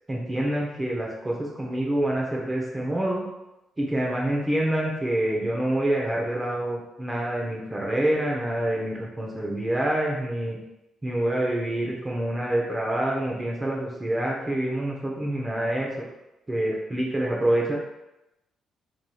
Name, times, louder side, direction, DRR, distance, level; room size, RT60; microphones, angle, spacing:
voice 1, 0.1-3.2 3.8-10.6 11.0-15.9 16.5-17.7, right 1 dB, 20° right, -3 dB, 0.7 m, -26 dB
4.6 x 2.9 x 2.3 m, 0.93 s
cardioid pair, 90°, 0 cm